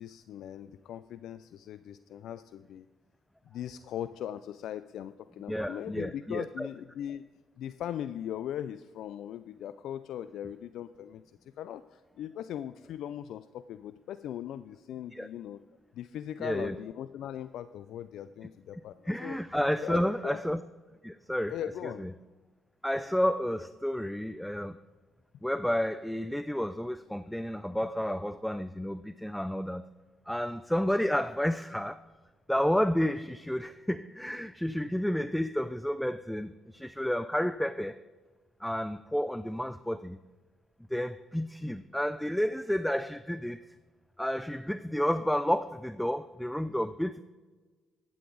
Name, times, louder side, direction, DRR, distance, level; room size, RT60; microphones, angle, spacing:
voice 1, 0.0-2.9 3.4-7.2 7.6-15.6 15.9-19.4 19.8-20.4 21.5-22.1, left 10 dB, 75° left, 13 dB, 0.3 m, -39 dB
voice 2, 5.5-6.7 15.1-15.3 16.4-16.8 19.1-20.6 21.0-21.5 22.0-22.1 22.8-24.8 25.4-29.8 30.3-32.0 32.5-38.0 38.6-40.2 40.9-43.6 44.2-47.2, equal, 5° left, 13 dB, 0.4 m, -31 dB
12.5 x 8.6 x 3.9 m, 1.3 s
supercardioid pair, 70°, 0 cm